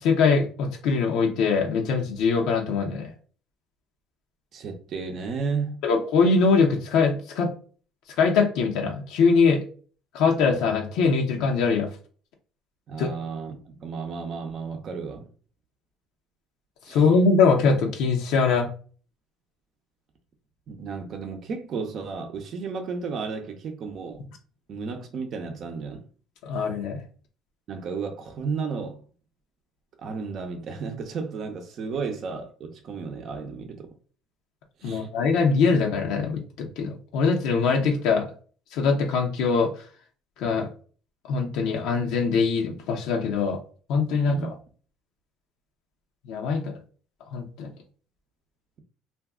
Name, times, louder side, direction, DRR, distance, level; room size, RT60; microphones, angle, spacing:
voice 1, 0.0-3.1 5.8-7.5 8.2-9.6 10.1-11.9 13.0-13.1 16.9-18.7 26.4-27.0 34.8-38.3 38.7-39.7 40.4-40.7 41.3-43.6 43.9-44.5 46.3-46.7 47.3-47.7, left 4 dB, 75° left, 0.8 m, -22 dB
voice 2, 4.5-5.8 12.9-15.3 16.8-17.1 20.7-24.2 24.7-26.1 27.7-29.0 30.0-33.9 34.8-35.1 44.3-44.5, right 5 dB, 50° right, 0.6 m, -33 dB
2.6 x 2.3 x 3.5 m
cardioid pair, 110°, 0 cm